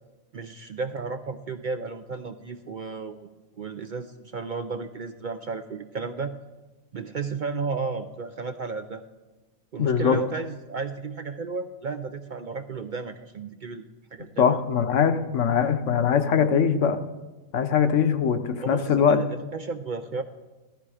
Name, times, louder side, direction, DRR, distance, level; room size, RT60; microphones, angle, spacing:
voice 1, 0.3-3.3 3.6-6.3 6.9-9.0 9.7-14.6 18.6-20.2, right 4 dB, 60° right, 8 dB, 0.5 m, -33 dB
voice 2, 9.8-10.2 14.4-17.0 17.5-19.2, left 7 dB, 60° left, 9 dB, 1.2 m, -22 dB
16.5 x 13.0 x 4.9 m, 1.2 s
omnidirectional pair, 1.5 m